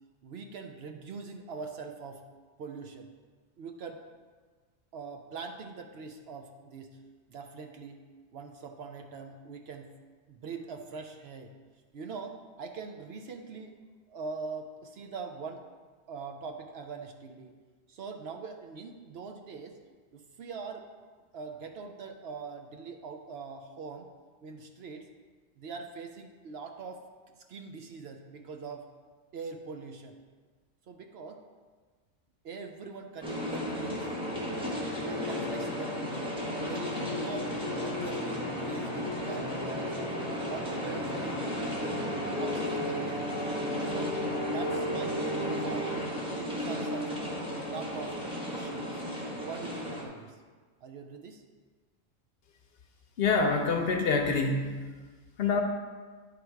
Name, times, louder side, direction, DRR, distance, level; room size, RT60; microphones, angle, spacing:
voice 1, 0.2-2.2 2.6-3.1 3.6-4.0 4.9-7.0 7.3-8.0 8.3-9.9 10.3-11.5 11.9-13.7 14.1-15.6 16.1-17.5 17.9-19.8 20.1-20.9 21.3-24.1 24.4-25.1 25.6-27.0 27.4-28.8 29.3-30.2 30.9-31.4 32.4-34.1 35.0-36.4 36.6-37.5 37.8-42.0 42.4-44.2 44.5-45.2 45.6-45.9 46.3-48.2 48.5-49.0 49.4-50.4 50.8-51.4, right 4 dB, 65° right, 4 dB, 0.8 m, -42 dB
sound 1, 33.2-50.1, equal, 5° right, 1.0 m, -33 dB
voice 2, 53.2-54.8 55.4-55.6, left 4 dB, 60° left, 4 dB, 0.8 m, -26 dB
10.0 x 3.4 x 4.6 m, 1.4 s
omnidirectional pair, 1.3 m